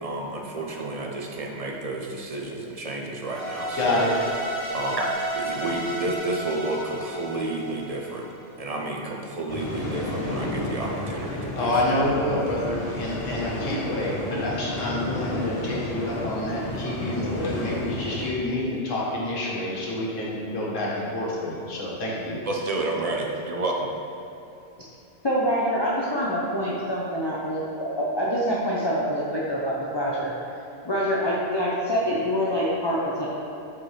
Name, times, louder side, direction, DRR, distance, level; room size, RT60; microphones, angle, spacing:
voice 1, 0.0-4.1 4.7-5.1 5.3-8.2 8.6-11.8 22.4-23.9, right 2 dB, 45° right, 0 dB, 0.5 m, -30 dB
sound 1, 3.2-8.5, right 1 dB, 70° right, 1.6 m, -32 dB
voice 2, 3.8-4.1 11.5-22.4, left 1 dB, 85° left, -5 dB, 1.6 m, -28 dB
sound 2, 9.5-18.3, left 1 dB, 50° left, 1.2 m, -32 dB
voice 3, 25.2-30.3 30.8-33.3, equal, 30° left, -6 dB, 0.6 m, -25 dB
7.2 x 4.7 x 3.2 m, 2.8 s
omnidirectional pair, 1.3 m